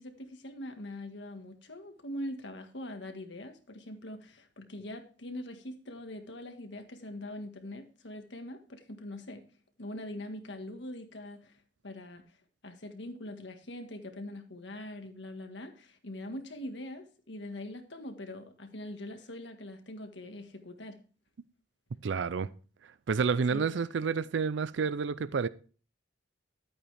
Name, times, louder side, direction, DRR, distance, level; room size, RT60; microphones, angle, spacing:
voice 1, 0.0-9.4 9.8-11.5 11.8-12.2 12.6-21.0 23.5-23.7, left 1 dB, 75° left, 1.6 m, -42 dB
voice 2, 22.0-22.5 23.1-25.5, right 5 dB, 75° right, 0.4 m, -29 dB
11.5 x 8.7 x 3.4 m
head